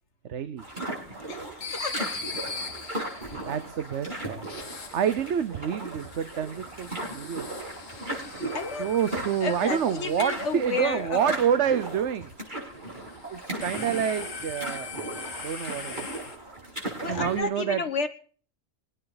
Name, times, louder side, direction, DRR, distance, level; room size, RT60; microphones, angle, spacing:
voice 1, 0.3-0.6 3.5-4.4 4.9-7.5 8.4-8.5 8.8-12.3 13.3-14.9 15.4-16.1 17.1-17.8, right 8 dB, 65° right, 12 dB, 1.1 m, -28 dB
sound 1, 0.6-17.4, right 1 dB, 40° right, 7.0 m, -37 dB
voice 2, 1.3-2.2 8.5-8.9 9.4-11.4 17.0-18.1, left 5 dB, 60° left, 8 dB, 1.8 m, -32 dB
sound 2, 1.6-3.6 4.4-5.4 5.8-10.6 12.8-16.4, left 4 dB, 90° left, 2.0 m, -40 dB
23.5 x 9.3 x 4.0 m, 0.42 s
omnidirectional pair, 1.3 m